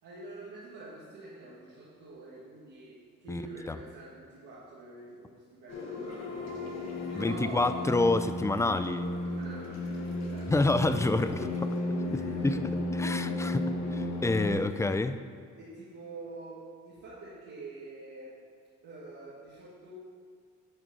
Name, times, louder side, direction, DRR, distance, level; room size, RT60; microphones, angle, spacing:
voice 1, 0.0-6.6 7.1-8.0 9.3-10.8 12.0-13.8 14.3-14.9 15.6-18.4 18.8-20.0, right 2 dB, 85° right, -8 dB, 1.8 m, -47 dB
sound 1, 5.7-14.5, left 2 dB, 60° left, 1.6 m, -34 dB
voice 2, 7.2-9.1 10.5-11.7 12.1-12.6 12.9-13.6 14.2-15.2, left 2 dB, 10° left, 10 dB, 0.4 m, -27 dB
10.5 x 3.8 x 6.9 m, 2.1 s
cardioid pair, 90°, 30 cm